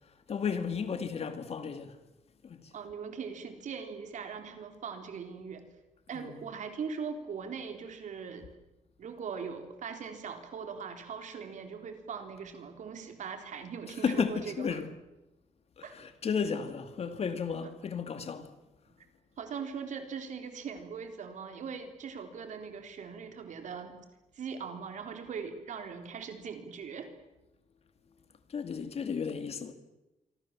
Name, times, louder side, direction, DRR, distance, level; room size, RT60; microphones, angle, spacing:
voice 1, 0.3-2.0 2.4-2.7 6.1-6.4 14.0-14.9 15.8-18.5 28.5-29.7, left 6 dB, 50° left, 2.4 m, -33 dB
voice 2, 2.7-5.7 6.1-8.5 9.0-14.7 15.8-15.9 19.4-24.0 24.3-27.1, right 6 dB, 70° right, 3.9 m, -40 dB
26.5 x 24.5 x 7.6 m
wide cardioid pair, 150°, 13 cm